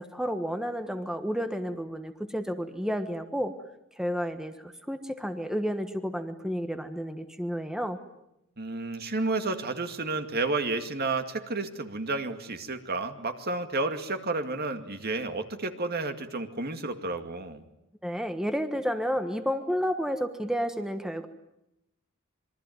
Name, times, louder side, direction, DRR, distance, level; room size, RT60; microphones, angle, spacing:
voice 1, 0.0-3.5 3.9-8.0 18.0-21.3, equal, 5° right, 8 dB, 1.3 m, -31 dB
voice 2, 8.6-17.6, right 3 dB, 50° right, 7 dB, 2.3 m, -31 dB
26.5 x 23.0 x 9.4 m, 0.85 s
head